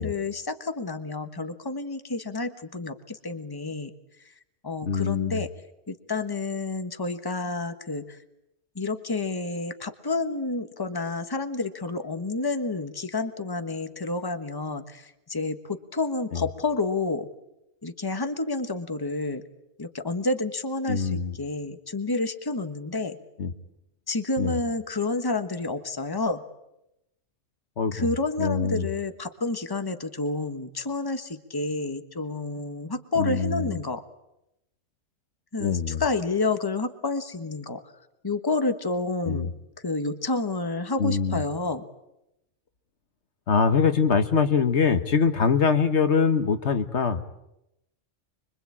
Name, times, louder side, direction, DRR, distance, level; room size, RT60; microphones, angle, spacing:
voice 1, 0.0-3.9 4.6-5.5 5.9-8.2 8.7-17.3 17.8-19.4 19.8-23.2 24.1-26.4 27.9-34.0 35.5-37.8 38.2-39.5 39.8-41.9, left 3 dB, 20° left, 8 dB, 1.4 m, -29 dB
voice 2, 4.9-5.4 16.3-16.4 20.9-21.4 23.4-23.5 24.4-24.6 27.8-28.1 28.4-28.9 33.2-33.8 35.6-36.0 39.2-39.5 41.0-41.4 43.5-47.2, left 5 dB, 65° left, 9 dB, 1.5 m, -23 dB
25.0 x 24.5 x 8.7 m, 0.87 s
omnidirectional pair, 1.3 m